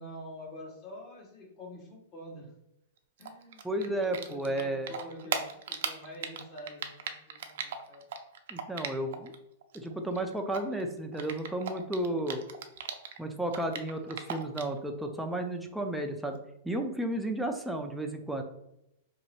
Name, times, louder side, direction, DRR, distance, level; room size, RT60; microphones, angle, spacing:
voice 1, 0.0-2.5 3.2-3.7 3.9-8.0, equal, 35° left, -1 dB, 1.2 m, -46 dB
Typing, 3.2-9.3 9.6-13.2 13.5-14.8, right 7 dB, 70° right, 0.5 m, -37 dB
voice 2, 3.6-4.9 8.5-9.3 9.7-12.4 13.2-16.4 16.6-18.4, right 1 dB, ahead, 3 dB, 0.4 m, -33 dB
3.0 x 2.8 x 4.3 m, 0.82 s
hypercardioid pair, 145°, 0 cm